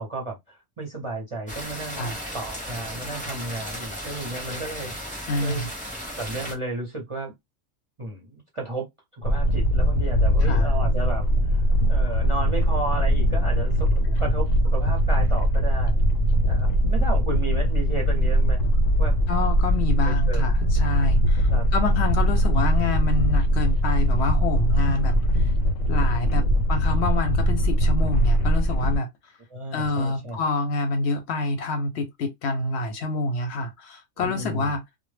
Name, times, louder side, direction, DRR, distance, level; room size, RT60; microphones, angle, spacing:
voice 1, 0.0-2.1 2.3-4.9 5.4-5.6 6.2-7.3 8.0-8.9 9.1-11.3 11.9-16.0 16.5-18.6 19.0-19.1 20.0-20.5 21.5-21.7 26.3-26.6 29.5-30.4 34.2-34.7, right 2 dB, 35° right, 0.5 m, -33 dB
sound 1, 1.5-6.5, equal, 10° left, 0.6 m, -35 dB
voice 2, 5.3-5.7 10.4-10.7 19.3-25.5 25.9-29.1 29.7-34.8, left 2 dB, 65° left, 0.7 m, -27 dB
sound 2, 9.2-29.0, equal, 90° left, 1.0 m, -21 dB
2.1 x 2.0 x 3.2 m
omnidirectional pair, 1.3 m